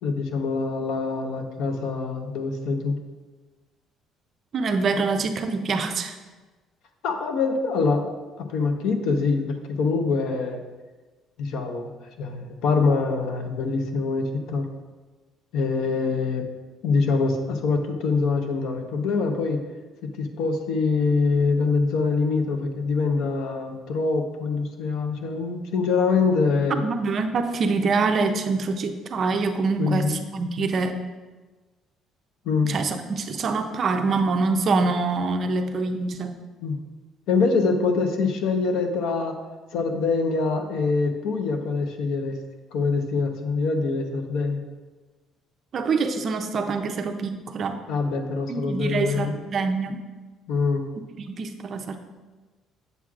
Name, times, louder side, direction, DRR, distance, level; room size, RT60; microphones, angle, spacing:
voice 1, 0.0-3.0 7.0-8.1 8.4-10.6 11.4-11.9 12.2-14.7 15.5-16.5 16.8-19.6 20.0-26.9 29.8-30.2 32.4-32.7 36.6-36.8 37.3-39.4 39.7-42.4 42.7-44.6 47.9-49.4 50.5-50.9, left 4 dB, 70° left, 5 dB, 0.7 m, -24 dB
voice 2, 4.5-6.2 26.8-31.0 32.6-36.4 45.7-47.8 48.5-50.0 51.2-52.0, right 4 dB, 35° right, 7 dB, 0.4 m, -25 dB
8.1 x 6.0 x 2.4 m, 1.3 s
cardioid pair, 160°, 0 cm